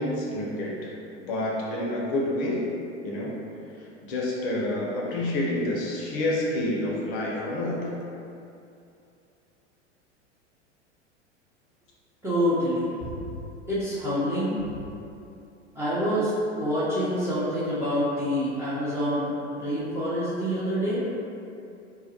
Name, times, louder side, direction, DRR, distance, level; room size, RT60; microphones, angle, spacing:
voice 1, 0.0-2.7 3.0-3.4 4.0-7.9, left 1 dB, 45° left, -4 dB, 0.5 m, -28 dB
voice 2, 12.2-13.2 13.7-14.6 15.7-21.0, equal, 5° right, -12 dB, 0.5 m, -27 dB
2.2 x 2.0 x 2.8 m, 2.6 s
figure-of-eight pair, 90°, 36 cm